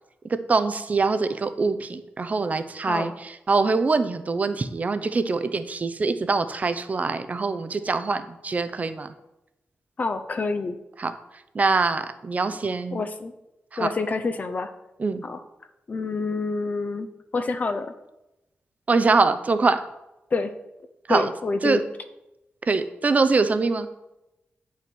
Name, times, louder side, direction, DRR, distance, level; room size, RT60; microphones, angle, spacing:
voice 1, 0.2-9.1 11.0-11.1 11.5-13.0 13.7-13.9 15.0-15.2 18.9-19.8 21.1-21.3 21.6-21.8 22.7-23.9, right 4 dB, 35° right, 10 dB, 0.7 m, -24 dB
voice 2, 10.0-10.8 12.9-13.3 13.8-14.7 15.2-15.4 15.9-17.1 17.3-17.9 20.3-20.5 21.1-21.8, left 3 dB, 40° left, 8 dB, 0.7 m, -27 dB
9.0 x 5.7 x 6.1 m, 0.93 s
wide cardioid pair, 140°, 4 cm